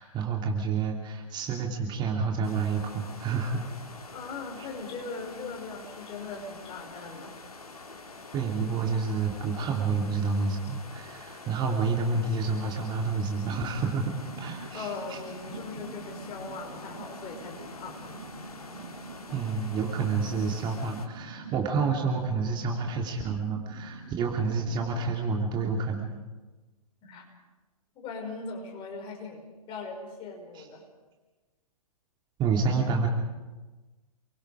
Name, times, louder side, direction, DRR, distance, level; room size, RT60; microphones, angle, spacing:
voice 1, 0.0-3.6 8.3-15.2 19.3-26.1 30.6-30.7 32.4-33.1, right 4 dB, 25° right, 1 dB, 2.8 m, -29 dB
sound 1, 2.4-21.1, left 3 dB, 75° left, 2.5 m, -46 dB
voice 2, 4.1-7.4 14.7-18.2 27.0-27.2 28.0-30.8, left 4 dB, 25° left, 1 dB, 5.5 m, -40 dB
sound 2, 13.6-26.3, right 3 dB, 85° right, 5.1 m, -45 dB
30.0 x 23.0 x 5.0 m, 1.2 s
figure-of-eight pair, 115°, 19 cm